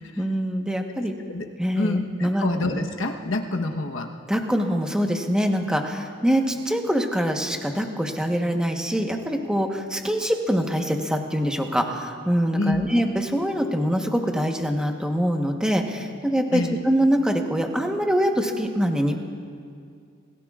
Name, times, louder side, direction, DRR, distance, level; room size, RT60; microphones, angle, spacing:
voice 1, 0.1-1.1 1.6-2.5 4.3-19.2, equal, 5° right, 2 dB, 1.1 m, -24 dB
voice 2, 1.8-4.1 12.5-12.9 16.5-16.8, left 2 dB, 75° left, 3 dB, 1.1 m, -27 dB
27.0 x 16.5 x 2.5 m, 2.3 s
head